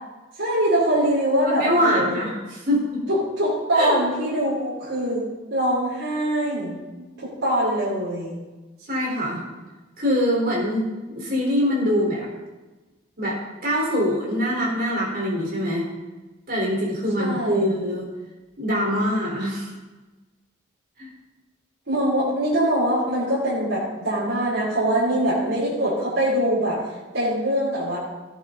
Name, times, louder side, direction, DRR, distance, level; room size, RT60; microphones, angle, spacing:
voice 1, 0.4-2.0 3.1-5.2 5.5-8.4 17.2-17.7 21.9-26.8 27.1-28.0, right 1 dB, 75° right, -8 dB, 5.5 m, -23 dB
voice 2, 1.5-3.0 3.7-4.0 8.9-9.4 10.0-10.9 11.1-12.3 13.2-15.9 16.5-18.1 18.6-19.7 21.0-21.1, equal, 50° right, -3 dB, 4.4 m, -23 dB
15.5 x 11.0 x 4.1 m, 1.2 s
head